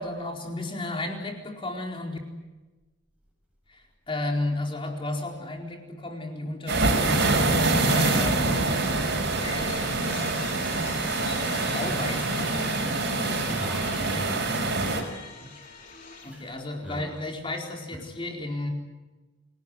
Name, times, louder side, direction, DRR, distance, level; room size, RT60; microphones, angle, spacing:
voice 1, 0.0-2.2 3.7-8.7 9.4-10.5 10.8-12.5 14.1-14.3 16.2-18.7, left 2 dB, 25° left, 2 dB, 4.4 m, -34 dB
sound 1, 6.7-15.0, right 2 dB, 55° right, 5.4 m, -25 dB
sound 2, 9.3-16.5, left 4 dB, 40° left, 3.9 m, -44 dB
voice 2, 13.4-16.6 16.8-17.1 17.9-18.0, equal, 5° right, -1 dB, 7.3 m, -40 dB
27.5 x 18.5 x 9.8 m, 1.2 s
head